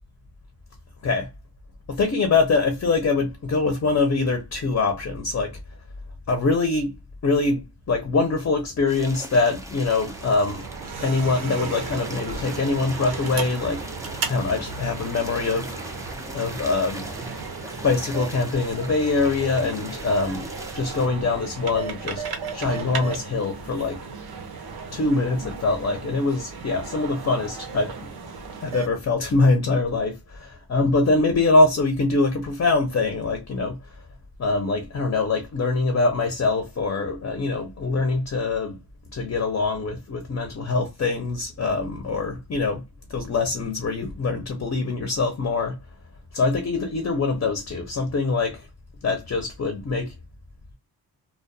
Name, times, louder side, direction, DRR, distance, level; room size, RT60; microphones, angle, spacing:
voice 1, 1.9-5.5 6.3-6.9 7.2-10.6 11.0-13.8 14.2-15.7 16.3-17.1 17.8-20.5 20.7-22.2 22.5-24.0 24.9-28.1 28.6-30.2 30.7-33.8 34.4-38.8 39.1-42.8 43.1-45.7 46.3-48.7 49.0-50.1, left 3 dB, 40° left, 0.7 m, -23 dB
sound 1, 8.9-21.1, right 1 dB, 10° right, 0.4 m, -40 dB
sound 2, 9.9-28.9, right 5 dB, 75° right, 0.7 m, -35 dB
2.3 x 2.2 x 2.5 m
cardioid pair, 95°, 38 cm